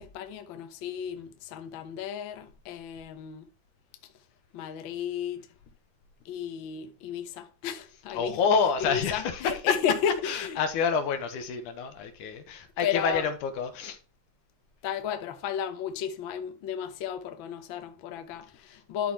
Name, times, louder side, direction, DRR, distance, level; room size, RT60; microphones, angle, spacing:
voice 1, 0.0-3.5 4.5-5.5 6.2-8.4 8.8-10.6 12.8-13.3 14.8-19.1, left 8 dB, 65° left, 1.3 m, -33 dB
voice 2, 8.1-9.4 10.2-14.0, left 6 dB, 90° left, 2.8 m, -28 dB
12.5 x 4.2 x 4.4 m
omnidirectional pair, 3.4 m